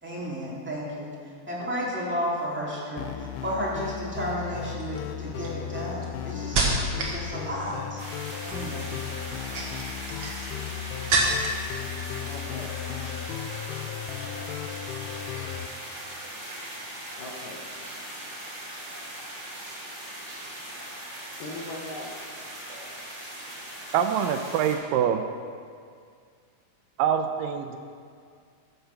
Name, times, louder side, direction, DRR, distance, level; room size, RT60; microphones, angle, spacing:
voice 1, 0.0-8.0 8.4-8.9, equal, 5° right, -6 dB, 1.6 m, -33 dB
sound 1, 3.0-15.7, left 10 dB, 90° left, 1.7 m, -36 dB
sound 2, 3.7-4.1 4.8-7.2 7.5-8.0 9.2-11.7 12.0-12.6 12.9-13.2, right 3 dB, 55° right, 1.3 m, -29 dB
sound 3, 8.0-24.7, right 1 dB, 25° right, 2.0 m, -39 dB
voice 2, 12.3-12.8 17.0-17.7 18.0-18.1 21.4-22.6, left 2 dB, 75° left, 0 dB, 2.7 m, -40 dB
voice 3, 23.9-25.2 27.0-27.8, right 8 dB, 80° right, 7 dB, 2.2 m, -25 dB
13.5 x 6.8 x 5.7 m, 2.2 s
omnidirectional pair, 4.1 m